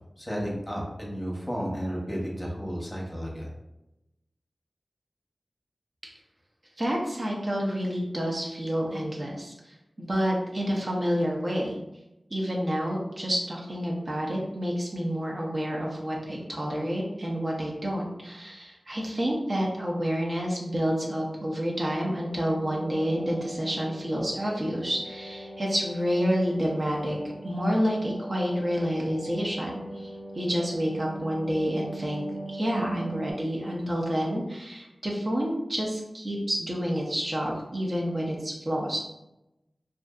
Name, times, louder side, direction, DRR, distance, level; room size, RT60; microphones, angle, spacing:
voice 1, 0.2-3.5, equal, 15° left, -3 dB, 0.8 m, -32 dB
voice 2, 6.8-11.8 12.3-27.2 27.4-39.0, equal, 50° right, -3 dB, 0.6 m, -29 dB
sound 1, 22.3-33.3, right 2 dB, 65° left, 0.4 m, -41 dB
2.5 x 2.4 x 2.3 m, 0.92 s
cardioid pair, 45°, 0 cm